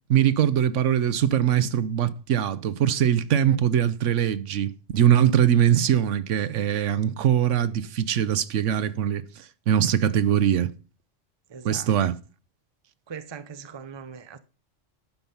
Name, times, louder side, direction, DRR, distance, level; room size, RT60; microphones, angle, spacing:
voice 1, 0.1-10.7 11.6-12.2, right 10 dB, 75° right, 1.0 m, -22 dB
voice 2, 11.5-11.9 13.1-14.4, right 6 dB, 30° right, 0.6 m, -40 dB
11.0 x 5.9 x 5.5 m
omnidirectional pair, 1.3 m